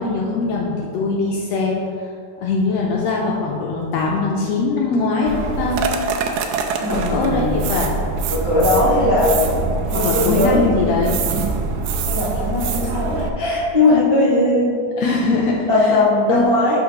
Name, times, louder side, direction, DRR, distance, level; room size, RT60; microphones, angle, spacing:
voice 1, 0.0-1.8 2.4-5.9 6.9-7.9 9.9-11.2 15.0-16.0 16.3-16.7, left 4 dB, 80° left, -2 dB, 1.6 m, -21 dB
sound 1, 5.3-13.3, right 5 dB, 80° right, 1.9 m, -24 dB
voice 2, 6.8-7.6 8.3-10.7 12.0-14.8 15.7-16.8, left 2 dB, 30° right, -9 dB, 0.5 m, -19 dB
12.0 x 4.3 x 2.9 m, 2.4 s
omnidirectional pair, 3.5 m